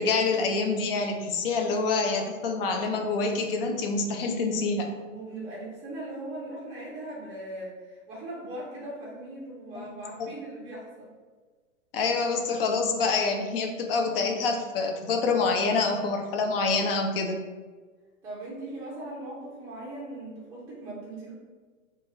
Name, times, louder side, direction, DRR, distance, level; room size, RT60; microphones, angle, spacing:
voice 1, 0.0-4.9 9.8-9.9 10.2-10.3 11.9-17.4, left 4 dB, 45° left, 4 dB, 0.5 m, -26 dB
voice 2, 5.1-11.1 18.2-21.3, right 1 dB, 10° right, -8 dB, 0.5 m, -39 dB
2.9 x 2.3 x 2.8 m, 1.4 s
hypercardioid pair, 130°, 40 cm